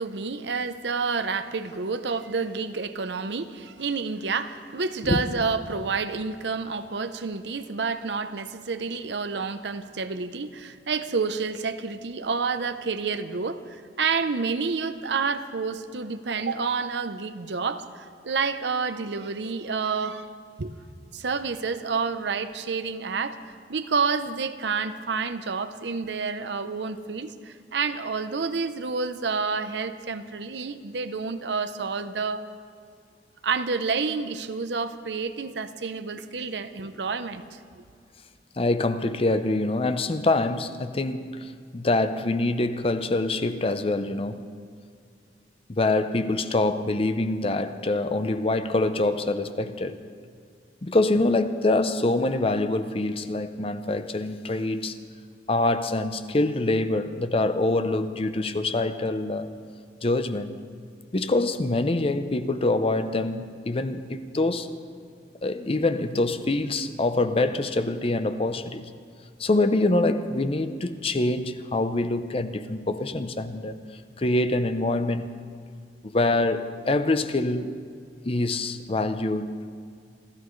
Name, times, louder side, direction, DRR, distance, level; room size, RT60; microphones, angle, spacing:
voice 1, 0.0-20.3 20.6-20.7 21.1-32.5 33.4-37.8, right 4 dB, 80° right, 0.7 m, -29 dB
voice 2, 38.6-44.5 45.7-50.0 50.8-54.9 55.5-59.5 60.0-60.5 61.1-64.7 65.4-68.9 69.4-73.8 74.2-75.3 76.0-77.7 78.2-79.5, left 2 dB, 35° left, 0.6 m, -25 dB
27.5 x 13.5 x 3.2 m
head